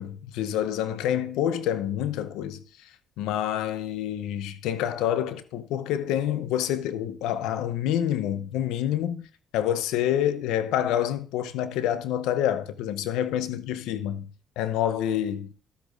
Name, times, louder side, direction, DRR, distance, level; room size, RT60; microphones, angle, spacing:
voice 1, 0.0-2.9 3.2-9.3 9.5-14.3 14.6-15.5, left 11 dB, 80° left, 0.7 m, -27 dB
13.0 x 8.2 x 2.5 m
supercardioid pair, 60°, 0 cm